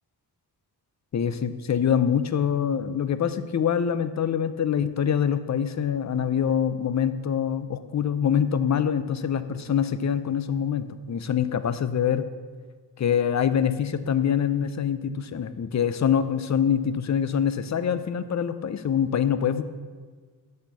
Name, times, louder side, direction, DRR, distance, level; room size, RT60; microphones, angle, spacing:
voice 1, 1.1-12.3 13.0-19.6, left 8 dB, 45° left, 12 dB, 0.6 m, -25 dB
12.0 x 4.4 x 8.2 m, 1.5 s
wide cardioid pair, 150°, 39 cm